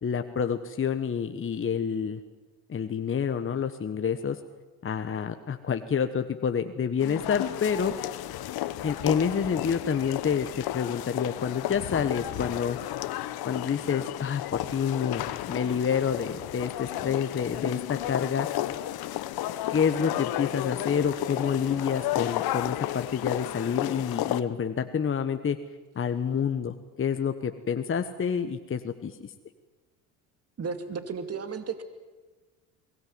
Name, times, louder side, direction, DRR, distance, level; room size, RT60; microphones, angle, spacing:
voice 1, 0.0-2.2 2.7-4.4 4.8-7.9 8.8-10.5 10.7-12.8 13.4-18.5 19.7-25.6 25.9-29.3, left 7 dB, 30° left, 8 dB, 1.3 m, -28 dB
sound 1, 7.0-24.4, left 14 dB, 60° left, 1.2 m, -33 dB
voice 2, 30.6-31.8, right 5 dB, 35° right, 8 dB, 2.5 m, -34 dB
22.5 x 18.5 x 9.5 m, 1.3 s
hypercardioid pair, 70°, 42 cm